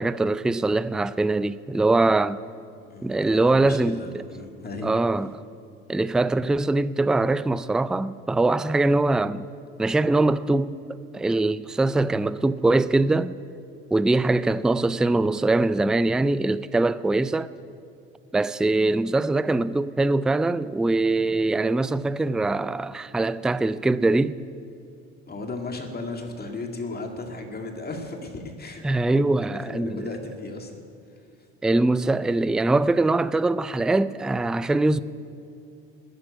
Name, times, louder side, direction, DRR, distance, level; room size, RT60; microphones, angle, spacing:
voice 1, 0.0-2.4 3.0-4.0 4.8-5.3 5.9-9.4 9.8-10.7 11.1-13.4 13.9-17.5 18.3-24.4 28.8-30.0 31.6-35.0, right 2 dB, ahead, 0.3 m, -22 dB
voice 2, 2.9-4.9 25.3-30.8 31.1-31.3, left 3 dB, 30° left, 2.1 m, -36 dB
13.0 x 10.0 x 9.7 m
hypercardioid pair, 75°, 33 cm